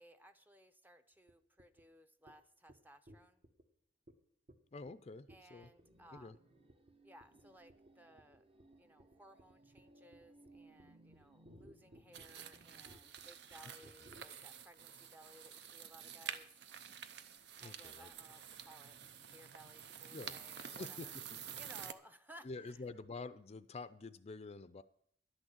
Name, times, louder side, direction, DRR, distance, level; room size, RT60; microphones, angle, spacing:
voice 1, 0.0-3.4 5.3-6.4 7.0-8.5 8.7-16.5 17.6-19.0 19.3-21.1 21.6-22.8, equal, 10° right, 0.6 m, -60 dB
sound 1, 1.3-1.4 1.6-1.8 2.3-2.4 2.7-2.8 3.1-3.6 4.1-4.2 4.5-4.6 4.9-5.0 5.3-5.8 6.2-6.4 6.7-6.9 7.2-7.4 7.7-7.9 8.2-14.2, right 1 dB, 50° right, 1.2 m, -60 dB
voice 2, 4.7-5.7 6.1-6.3 17.6-18.1 20.1-21.4 22.4-24.8, left 3 dB, 35° left, 0.4 m, -48 dB
sound 2, 5.5-12.8, right 2 dB, 35° right, 0.9 m, -65 dB
sound 3, 12.1-21.9, right 8 dB, 65° right, 0.7 m, -49 dB
11.5 x 6.3 x 8.6 m
head